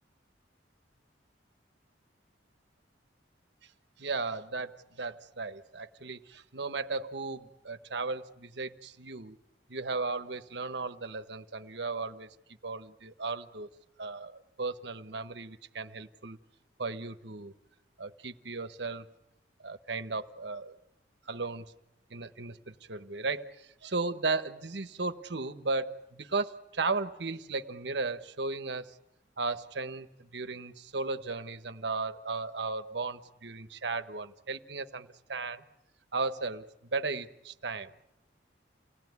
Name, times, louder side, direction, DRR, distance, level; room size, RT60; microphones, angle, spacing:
voice 1, 4.0-9.4 9.7-12.3 12.6-13.7 14.0-16.4 16.8-17.5 18.0-19.1 19.6-20.7 21.2-21.7 22.1-28.9 29.4-35.6 36.1-37.9, right 3 dB, 65° right, 10 dB, 1.2 m, -35 dB
29.0 x 18.0 x 9.6 m, 0.89 s
head